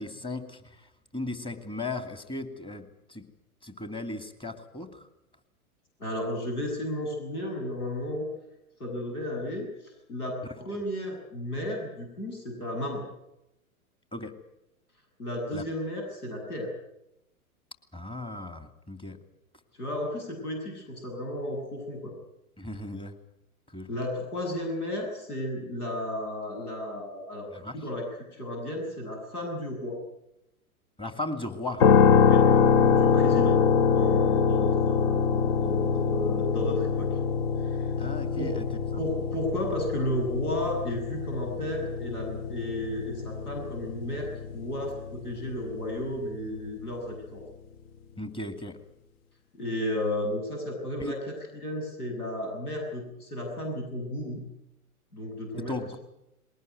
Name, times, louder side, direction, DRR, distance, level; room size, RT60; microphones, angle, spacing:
voice 1, 0.0-3.2 3.6-5.1 14.1-14.3 15.5-15.6 17.9-19.2 22.6-23.2 23.7-23.9 27.5-27.8 31.0-31.8 38.0-38.6 38.9-39.0 48.2-48.8 51.0-51.2 55.7-56.0, left 2 dB, 10° left, 8 dB, 2.5 m, -36 dB
voice 2, 6.0-8.3 8.8-13.0 15.2-16.7 19.7-22.1 23.9-30.0 32.2-32.5 32.8-37.2 37.6-37.9 38.3-38.5 39.0-47.4 49.5-54.4 55.1-55.8, left 1 dB, 80° left, 2 dB, 7.7 m, -33 dB
sound 1, 31.8-45.8, left 6 dB, 40° left, 1.1 m, -24 dB
21.0 x 18.5 x 9.5 m, 0.86 s
hypercardioid pair, 110°, 44 cm